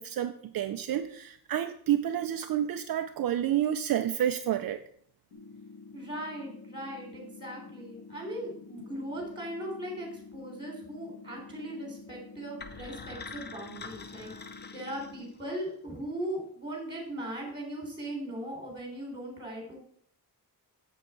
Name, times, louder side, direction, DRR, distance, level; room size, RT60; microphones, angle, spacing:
voice 1, 0.0-4.8, right 10 dB, 65° right, 0.5 m, -29 dB
sound 1, 5.3-15.3, left 4 dB, 85° left, 1.8 m, -49 dB
voice 2, 5.9-19.8, right 1 dB, 10° right, 3.2 m, -39 dB
sound 2, 12.6-15.6, left 4 dB, 25° left, 0.5 m, -45 dB
7.7 x 7.1 x 4.5 m
wide cardioid pair, 150°, 38 cm